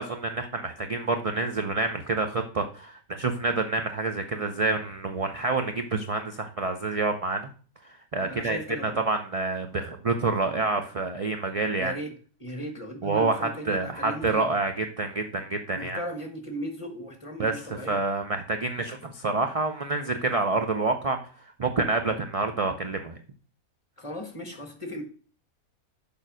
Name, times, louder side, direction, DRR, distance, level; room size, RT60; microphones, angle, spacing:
voice 1, 0.0-7.5 8.1-12.0 13.0-16.0 17.4-21.2 21.6-23.2, right 3 dB, 45° right, 6 dB, 0.4 m, -28 dB
voice 2, 8.3-9.0 11.8-12.1 12.4-14.5 15.7-18.0 24.0-25.0, equal, 25° left, 5 dB, 1.3 m, -37 dB
6.7 x 5.3 x 6.1 m, 0.41 s
omnidirectional pair, 1.5 m